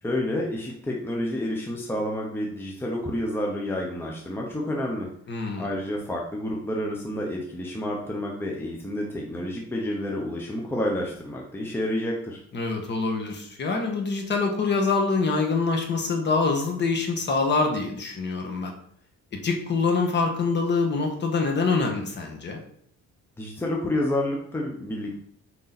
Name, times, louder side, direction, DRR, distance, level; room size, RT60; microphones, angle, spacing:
voice 1, 0.0-5.1 5.6-12.4 23.4-25.2, left 1 dB, 10° left, -1 dB, 0.9 m, -29 dB
voice 2, 5.3-5.7 12.5-18.7 19.4-22.6, left 4 dB, 40° left, 2 dB, 1.5 m, -25 dB
6.7 x 5.3 x 4.2 m, 0.66 s
cardioid pair, 165°, 29 cm